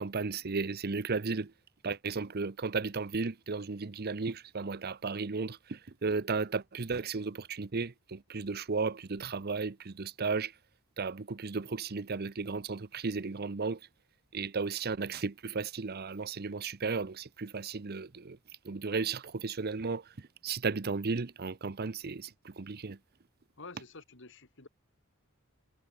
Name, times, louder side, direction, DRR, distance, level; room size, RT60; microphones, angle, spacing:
voice 1, 0.0-1.5 1.8-10.5 11.0-13.8 14.3-18.4 18.6-23.0, right 4 dB, 45° right, 0.7 m, -34 dB
voice 2, 23.6-24.7, left 3 dB, 60° left, 2.6 m, -49 dB
head